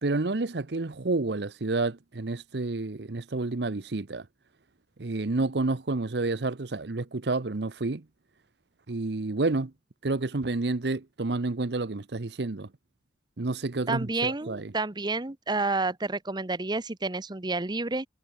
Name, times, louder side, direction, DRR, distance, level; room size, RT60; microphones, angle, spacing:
voice 1, 0.0-4.3 5.0-8.0 8.9-9.7 10.0-12.7 13.4-14.7, right 3 dB, 70° right, 0.9 m, -29 dB
voice 2, 13.9-18.1, right 3 dB, 25° right, 1.0 m, -30 dB
head